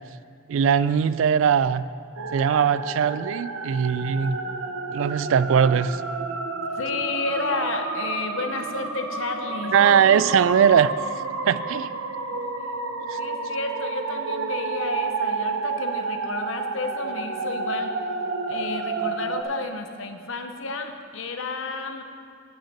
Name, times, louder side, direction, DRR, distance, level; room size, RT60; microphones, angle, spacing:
voice 1, 0.5-1.9 2.3-4.4 4.9-6.0 9.7-10.9 11.4-11.9 13.1-13.2, right 7 dB, 65° right, 16 dB, 0.3 m, -20 dB
sound 1, 2.2-19.4, right 4 dB, 85° right, 0.8 m, -30 dB
voice 2, 6.7-10.0 13.2-18.0 18.5-22.0, left 3 dB, 65° left, 6 dB, 0.8 m, -31 dB
8.7 x 5.7 x 8.1 m, 2.2 s
head